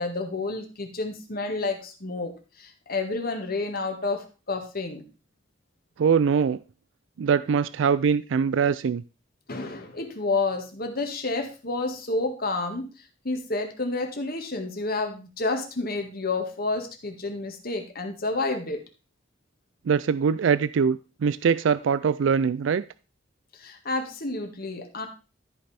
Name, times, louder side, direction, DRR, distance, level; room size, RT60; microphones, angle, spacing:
voice 1, 0.0-5.1 9.5-12.9 13.2-18.8 23.6-25.1, left 3 dB, 50° left, 5 dB, 1.8 m, -30 dB
voice 2, 6.0-6.6 7.2-9.0 19.9-22.8, right 6 dB, 80° right, 16 dB, 0.4 m, -22 dB
13.0 x 5.4 x 4.3 m, 0.34 s
head